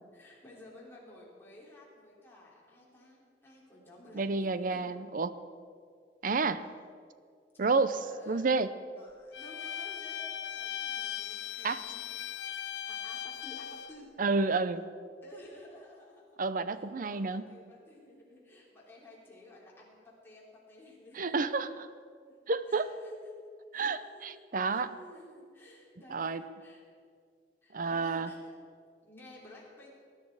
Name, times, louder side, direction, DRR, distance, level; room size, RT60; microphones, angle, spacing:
voice 1, 0.1-4.9 8.0-8.5 9.0-12.1 12.9-14.1 15.2-16.4 16.7-21.7 22.3-22.4 22.7-23.4 23.7-26.8 27.6-28.6 29.0-29.9, left 1 dB, 15° left, -6 dB, 3.9 m, -53 dB
voice 2, 4.1-5.3 6.2-6.6 7.6-8.7 11.6-11.8 14.2-14.8 16.4-17.5 21.2-21.9 22.5-22.9 23.7-25.0 26.1-26.4 27.7-28.3, right 4 dB, 50° right, 13 dB, 0.6 m, -30 dB
Bowed string instrument, 9.3-14.0, left 10 dB, 75° left, 0.5 m, -39 dB
19.5 x 11.0 x 4.8 m, 2.1 s
head